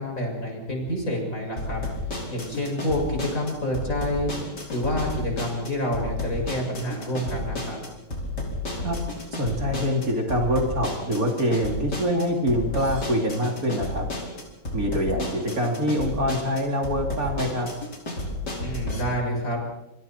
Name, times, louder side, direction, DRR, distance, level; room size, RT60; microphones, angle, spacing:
voice 1, 0.0-1.8 2.3-4.3 4.7-7.8 18.6-19.6, equal, 45° left, 0 dB, 7.3 m, -28 dB
sound 1, 1.6-19.0, left 2 dB, 70° left, 5.7 m, -32 dB
voice 2, 9.3-14.1 14.7-17.7, equal, 50° right, 1 dB, 3.7 m, -25 dB
27.5 x 27.0 x 4.5 m, 0.92 s
omnidirectional pair, 1.9 m